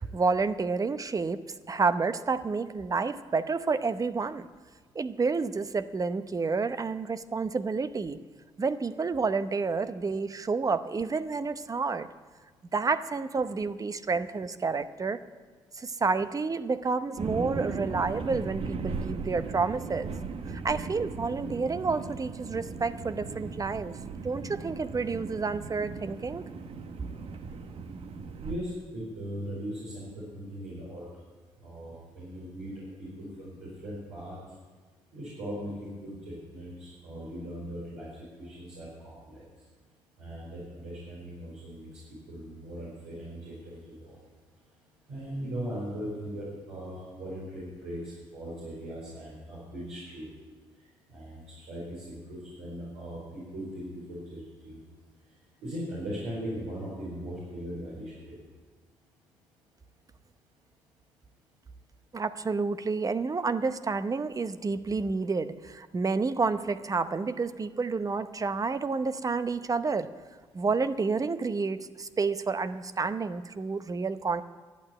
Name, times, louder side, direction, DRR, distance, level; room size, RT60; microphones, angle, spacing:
voice 1, 0.0-4.5 4.9-8.2 8.6-12.1 12.7-15.2 15.7-20.1 20.5-24.0 24.2-26.4 62.1-70.1 70.5-74.4, right 4 dB, 35° right, 12 dB, 0.7 m, -29 dB
sound 1, 17.2-28.6, right 4 dB, 60° right, 1.0 m, -37 dB
voice 2, 28.4-31.0 31.6-32.7 33.0-34.4 35.1-38.1 38.4-39.4 40.2-41.9 42.3-44.1 45.1-48.0 48.3-50.3 51.1-54.8 55.6-58.4, equal, 85° right, -8 dB, 4.7 m, -39 dB
11.5 x 8.9 x 8.7 m, 1.4 s
supercardioid pair, 55°, 11 cm